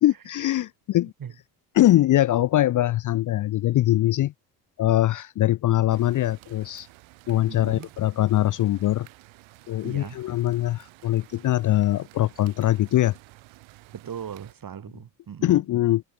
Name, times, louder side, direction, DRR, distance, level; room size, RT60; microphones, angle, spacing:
voice 1, 0.0-1.1 1.7-4.3 4.8-6.9 7.3-9.1 9.7-13.2 15.4-16.0, left 14 dB, 45° left, 0.5 m, -22 dB
sound 1, 5.9-14.5, right 20 dB, 75° right, 2.2 m, -52 dB
voice 2, 7.5-7.9 9.8-10.2 13.9-15.6, right 8 dB, 45° right, 4.7 m, -38 dB
supercardioid pair, 75°, 46 cm